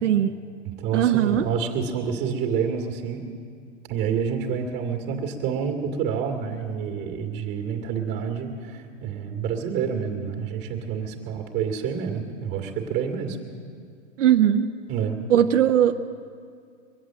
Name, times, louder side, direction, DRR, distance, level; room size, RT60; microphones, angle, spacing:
voice 1, 0.0-0.3 0.9-1.5 14.2-14.7 15.3-16.0, right 10 dB, 85° right, 6 dB, 0.8 m, -19 dB
voice 2, 0.8-3.2 3.9-13.4 14.9-15.2, right 7 dB, 30° right, 2 dB, 2.0 m, -28 dB
23.0 x 8.2 x 7.5 m, 2.2 s
hypercardioid pair, 150°, 36 cm